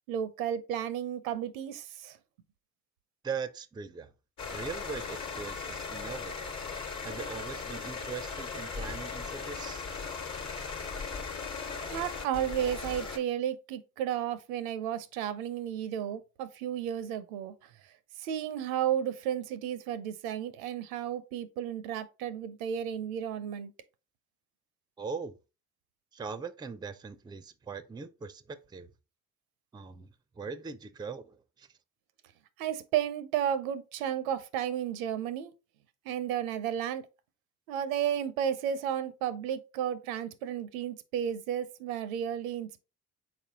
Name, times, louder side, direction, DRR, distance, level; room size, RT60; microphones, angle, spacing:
voice 1, 0.1-2.2 11.9-17.5 18.2-23.7 32.6-35.5 36.1-37.1 37.7-42.8, right 10 dB, 80° right, 0.6 m, -33 dB
voice 2, 3.2-4.1 4.5-6.5 7.0-9.8 25.0-25.3 26.1-28.9 29.7-30.1 30.4-31.7, right 5 dB, 10° right, 0.4 m, -40 dB
sound 1, 4.4-13.2, left 5 dB, 45° left, 1.2 m, -38 dB
4.2 x 4.1 x 2.8 m
hypercardioid pair, 50°, 41 cm